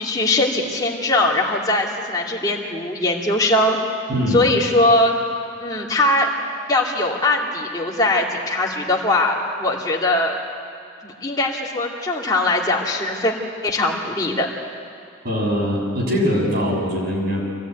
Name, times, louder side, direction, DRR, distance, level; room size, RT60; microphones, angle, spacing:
voice 1, 0.0-3.8 4.3-5.2 5.6-6.3 6.7-10.4 11.0-13.3 13.6-14.5, left 2 dB, 20° left, -2 dB, 2.5 m, -20 dB
voice 2, 4.1-4.5 15.2-17.4, equal, 55° right, -2 dB, 6.7 m, -22 dB
24.5 x 17.0 x 9.4 m, 2.3 s
head